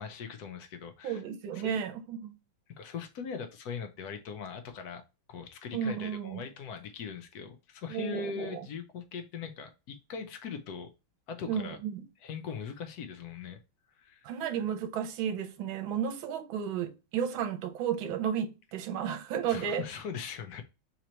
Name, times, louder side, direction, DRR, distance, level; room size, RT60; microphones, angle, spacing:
voice 1, 0.0-1.2 1.5-1.9 2.7-5.0 5.3-10.9 11.3-11.8 12.2-13.6 14.0-14.3 19.5-20.6, left 6 dB, 70° left, 0.9 m, -40 dB
voice 2, 1.0-2.4 5.7-6.4 7.9-8.6 11.5-12.0 14.2-19.8, right 8 dB, 75° right, 1.5 m, -33 dB
3.9 x 3.0 x 4.3 m
omnidirectional pair, 2.3 m